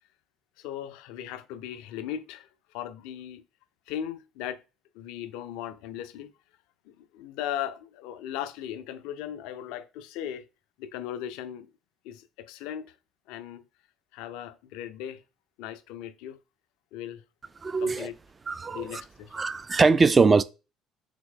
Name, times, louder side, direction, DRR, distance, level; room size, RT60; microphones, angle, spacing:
voice 1, 0.6-3.4 3.9-4.6 4.9-6.3 6.9-10.5 10.8-11.7 12.0-13.0 13.3-13.7 14.1-15.2 15.6-16.4 16.9-17.2 17.8-18.1 18.7-19.4, left 10 dB, 80° left, 0.4 m, -37 dB
voice 2, 17.6-18.1 18.5-19.0 19.3-20.4, right 4 dB, 30° right, 0.4 m, -22 dB
3.6 x 3.1 x 3.7 m
supercardioid pair, 70°, 0 cm